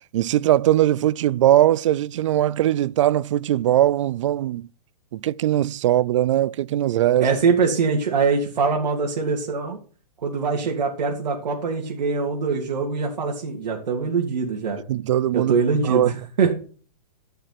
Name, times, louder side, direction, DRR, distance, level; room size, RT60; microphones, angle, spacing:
voice 1, 0.1-4.7 5.1-7.3 14.9-15.5 15.8-16.1, right 13 dB, 50° right, 0.4 m, -20 dB
voice 2, 7.2-9.8 10.2-14.8 15.3-16.5, right 5 dB, 85° right, 3.1 m, -23 dB
13.5 x 6.9 x 6.0 m
hypercardioid pair, 160°, 21 cm